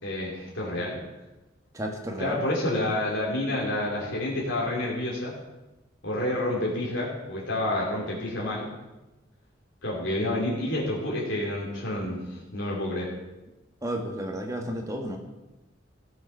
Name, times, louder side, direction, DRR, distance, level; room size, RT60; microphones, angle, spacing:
voice 1, 0.0-1.0 2.2-5.3 6.0-8.7 9.8-13.1, left 1 dB, 85° left, -4 dB, 3.0 m, -29 dB
voice 2, 1.7-2.4 13.8-15.2, right 1 dB, 15° right, 2 dB, 1.7 m, -32 dB
15.0 x 8.0 x 5.6 m, 1.1 s
head